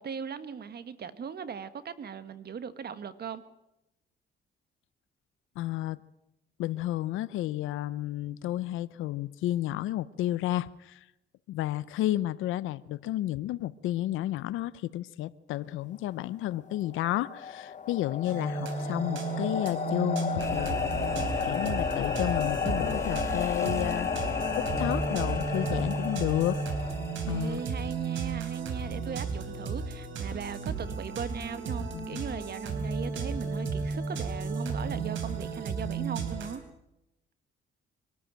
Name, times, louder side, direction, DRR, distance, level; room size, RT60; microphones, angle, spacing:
voice 1, 0.0-3.4 27.2-36.6, right 7 dB, 55° right, 1.7 m, -38 dB
voice 2, 5.6-6.0 6.6-11.1 11.5-20.8 21.4-26.7 27.3-27.6 31.8-32.2 35.9-36.1, left 14 dB, 90° left, 0.7 m, -32 dB
sound 1, 16.7-27.6, left 7 dB, 40° left, 1.1 m, -33 dB
sound 2, 18.2-36.6, right 5 dB, 75° right, 3.8 m, -34 dB
sound 3, 20.4-28.3, left 2 dB, 15° left, 3.0 m, -38 dB
23.5 x 13.5 x 9.0 m
cardioid pair, 90°, 20 cm